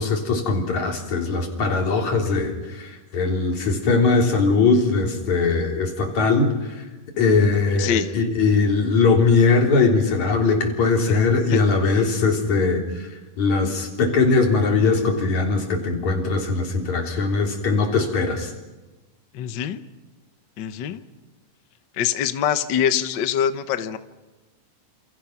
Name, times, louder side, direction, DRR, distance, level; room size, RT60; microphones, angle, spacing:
voice 1, 0.0-6.8 7.2-13.1 13.4-18.5, left 4 dB, 60° left, 2 dB, 4.7 m, -20 dB
voice 2, 7.8-8.1 11.1-11.2 11.5-11.6 19.3-19.8 20.6-21.0 21.9-24.0, left 9 dB, 85° left, 10 dB, 1.0 m, -24 dB
28.5 x 28.5 x 6.0 m, 1.1 s
omnidirectional pair, 3.8 m